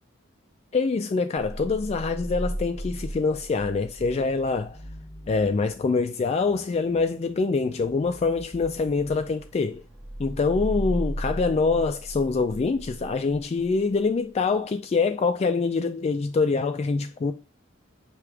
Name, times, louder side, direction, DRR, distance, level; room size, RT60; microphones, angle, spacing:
voice 1, 0.7-4.8 5.3-9.8 10.2-17.3, left 4 dB, 35° left, 0.3 m, -25 dB
sound 1, 1.4-14.0, right 1 dB, 5° right, 0.9 m, -37 dB
4.8 x 2.9 x 3.4 m
head